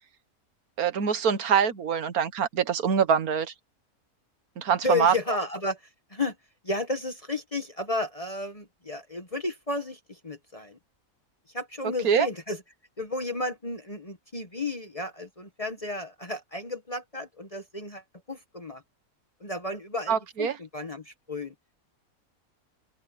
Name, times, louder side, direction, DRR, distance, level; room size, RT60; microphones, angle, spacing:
voice 1, 0.8-3.5 4.6-5.4 12.0-12.3 20.1-20.6, right 7 dB, 90° right, 1.7 m, -24 dB
voice 2, 4.8-5.8 6.1-6.3 6.6-10.8 11.5-12.6 13.0-18.0 18.3-18.8 19.4-21.5, left 2 dB, 25° left, 1.3 m, -32 dB
open air
omnidirectional pair, 1.5 m